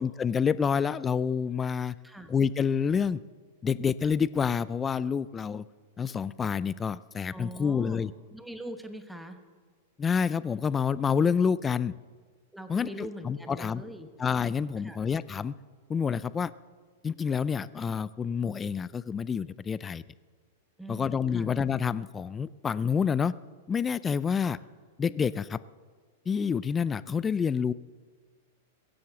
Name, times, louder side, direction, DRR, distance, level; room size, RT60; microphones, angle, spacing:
voice 1, 0.0-1.9 2.3-3.2 3.6-5.6 6.0-8.1 10.0-11.9 12.7-13.8 14.2-15.5 15.9-16.5 17.0-20.0 20.9-23.3 23.7-24.6 25.0-25.6 26.3-27.7, left 6 dB, 15° left, 17 dB, 0.4 m, -28 dB
voice 2, 7.3-8.0 8.3-9.4 12.5-14.1 14.8-15.0 20.8-21.5 24.4-24.6, right 1 dB, ahead, 7 dB, 1.2 m, -42 dB
22.5 x 7.8 x 7.1 m, 1.5 s
hypercardioid pair, 140°, 0 cm